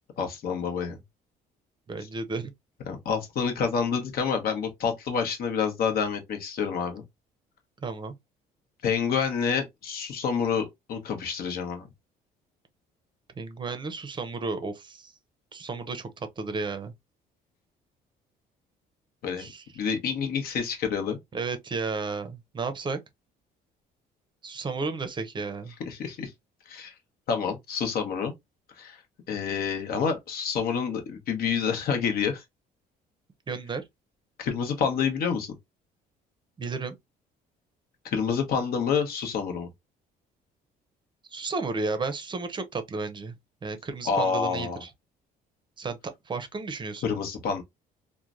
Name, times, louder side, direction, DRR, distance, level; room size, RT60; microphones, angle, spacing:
voice 1, 0.2-1.0 2.9-7.0 8.8-11.9 19.2-19.5 19.7-21.2 25.9-26.3 26.7-26.9 27.3-28.3 28.8-29.0 29.3-32.4 34.4-35.5 38.0-39.7 44.0-44.8 47.0-47.6, left 6 dB, 60° left, 0.9 m, -28 dB
voice 2, 1.9-2.5 7.8-8.1 13.4-15.1 15.5-16.9 19.4-19.6 21.3-23.0 24.4-25.7 33.5-33.8 36.6-36.9 41.3-43.3 43.6-44.9 45.8-47.0, right 4 dB, 25° right, 0.6 m, -33 dB
3.1 x 2.1 x 2.4 m
cardioid pair, 110°, 17 cm